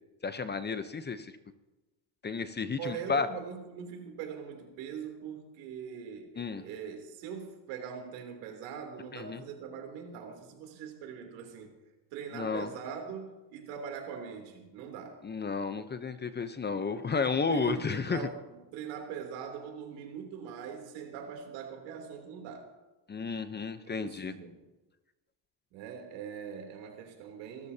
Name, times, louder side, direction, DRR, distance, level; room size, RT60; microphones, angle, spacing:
voice 1, 0.2-1.3 2.2-3.3 6.4-6.6 9.1-9.4 12.3-12.7 15.2-18.2 23.1-24.3, left 5 dB, 20° left, 11 dB, 0.8 m, -32 dB
voice 2, 2.8-11.7 12.1-15.2 17.5-22.7 23.8-24.6 25.7-27.7, right 7 dB, 85° right, 3 dB, 3.3 m, -42 dB
25.0 x 13.5 x 2.8 m, 1.1 s
supercardioid pair, 105°, 49 cm